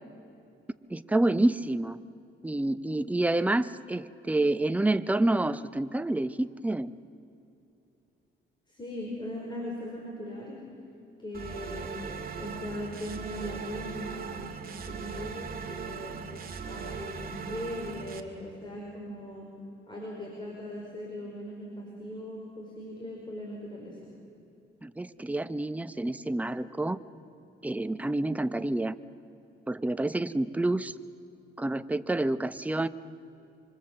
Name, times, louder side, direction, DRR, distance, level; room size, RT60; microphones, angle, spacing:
voice 1, 0.9-2.0 2.4-6.9 24.8-27.0 27.6-29.0 29.7-30.9 31.6-32.9, right 2 dB, 5° right, 12 dB, 0.7 m, -28 dB
voice 2, 8.7-10.6 11.2-14.4 14.8-16.2 16.6-19.5 19.9-24.1, left 1 dB, 20° left, -2 dB, 5.1 m, -39 dB
sound 1, 11.3-18.2, right 6 dB, 45° right, 2.1 m, -39 dB
25.5 x 25.0 x 7.5 m, 2.8 s
cardioid pair, 105°, 20 cm